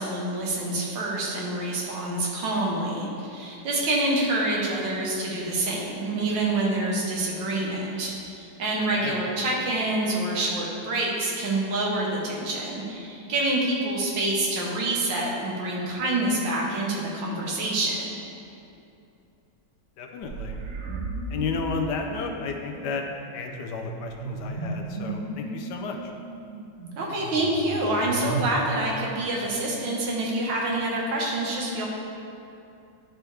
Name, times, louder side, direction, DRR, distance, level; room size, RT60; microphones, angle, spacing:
voice 1, 0.0-18.2 27.0-31.9, right 2 dB, 80° right, -3 dB, 1.9 m, -27 dB
voice 2, 8.9-9.2 20.0-20.6 21.3-23.0 23.3-26.0, left 5 dB, 70° left, 2 dB, 1.2 m, -32 dB
sound 1, 20.2-28.5, right 3 dB, 60° right, 0.9 m, -35 dB
11.0 x 4.6 x 3.3 m, 2.7 s
omnidirectional pair, 2.0 m